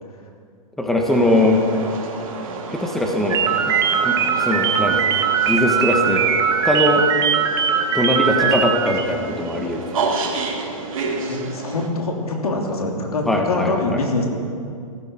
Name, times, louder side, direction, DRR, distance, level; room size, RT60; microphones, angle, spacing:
voice 1, 0.8-1.6 2.7-3.7 4.0-5.1 5.5-6.2 6.6-7.1 7.9-9.8 13.3-14.0, left 1 dB, ahead, 1 dB, 1.3 m, -21 dB
sound 1, 1.1-11.9, right 3 dB, 70° right, 2.8 m, -30 dB
sound 2, 3.3-9.1, right 7 dB, 20° right, 1.0 m, -20 dB
voice 2, 11.3-14.3, left 2 dB, 90° left, 1 dB, 3.0 m, -24 dB
16.0 x 14.5 x 4.5 m, 2.3 s
hypercardioid pair, 140°, 18 cm